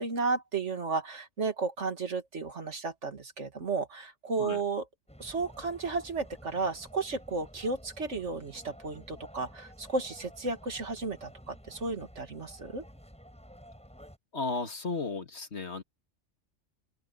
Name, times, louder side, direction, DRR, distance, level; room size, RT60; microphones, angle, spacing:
voice 1, 0.0-4.8 5.2-12.8, right 4 dB, 75° right, 2.4 m, -33 dB
sound 1, 5.1-14.2, equal, 5° left, 7.9 m, -52 dB
voice 2, 14.3-15.8, left 3 dB, 65° left, 2.4 m, -34 dB
open air
omnidirectional pair, 1.2 m